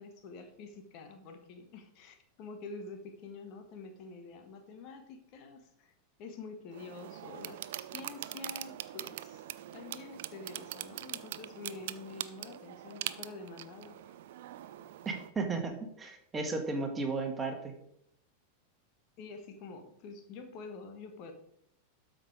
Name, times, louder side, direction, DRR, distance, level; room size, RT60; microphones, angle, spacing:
voice 1, 0.0-5.9 6.2-7.6 7.9-9.4 9.7-14.2 19.2-21.3, left 4 dB, 40° left, 6 dB, 1.5 m, -47 dB
Atari Joystick, 6.7-15.3, right 13 dB, 55° right, 0.4 m, -43 dB
voice 2, 15.0-17.7, right 3 dB, 15° right, 4 dB, 1.7 m, -34 dB
12.5 x 5.3 x 5.0 m, 0.75 s
figure-of-eight pair, 90°, 0 cm